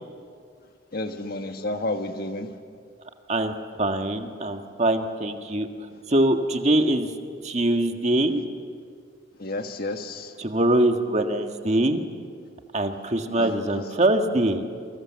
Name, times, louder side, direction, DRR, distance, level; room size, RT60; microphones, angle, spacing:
voice 1, 0.9-2.5 9.4-10.3 13.4-13.8, left 2 dB, 50° left, 6 dB, 1.6 m, -31 dB
voice 2, 3.8-5.7 6.1-7.1 7.4-8.4 10.4-12.0 12.7-14.6, right 1 dB, 35° right, 5 dB, 1.6 m, -23 dB
29.5 x 24.5 x 7.5 m, 2.2 s
head